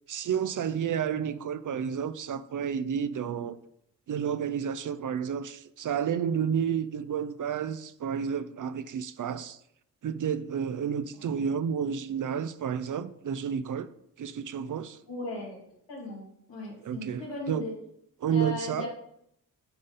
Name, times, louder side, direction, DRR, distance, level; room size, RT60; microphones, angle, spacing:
voice 1, 0.1-3.6 4.1-9.6 10.0-13.9 14.2-15.0 16.8-17.6 18.2-18.9, right 7 dB, 50° right, 0.5 m, -31 dB
voice 2, 15.1-15.6 15.9-17.7 18.3-18.9, left 2 dB, 90° left, 2.4 m, -37 dB
9.0 x 3.9 x 3.9 m
supercardioid pair, 45°, 42 cm